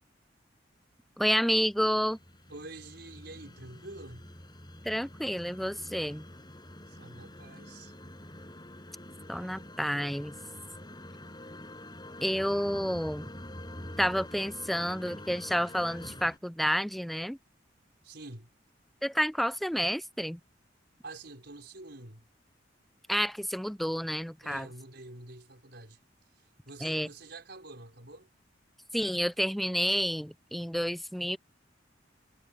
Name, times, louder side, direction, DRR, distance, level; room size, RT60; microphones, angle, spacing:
voice 1, 1.2-2.2 4.8-6.2 9.3-10.3 12.2-13.3 14.0-17.4 19.0-20.4 23.1-24.7 26.8-27.1 28.9-31.4, equal, ahead, 0.5 m, -30 dB
sound 1, 1.7-16.4, left 1 dB, 25° left, 7.5 m, -46 dB
voice 2, 2.5-4.3 6.9-7.9 18.0-18.5 21.0-22.2 24.4-26.0 26.4-28.3, right 2 dB, 65° right, 5.8 m, -47 dB
head